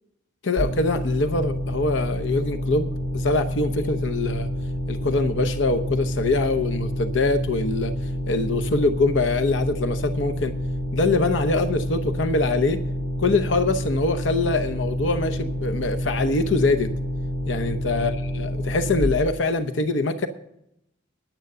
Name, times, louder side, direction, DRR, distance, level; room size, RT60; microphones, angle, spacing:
voice 1, 0.4-4.5 4.9-7.9 8.3-10.6 10.9-12.8 13.2-16.9 17.5-20.3, left 3 dB, 90° left, 9 dB, 0.8 m, -23 dB
sound 1, 0.6-19.0, equal, 25° right, 6.4 m, -28 dB
10.0 x 9.1 x 6.7 m, 0.77 s
head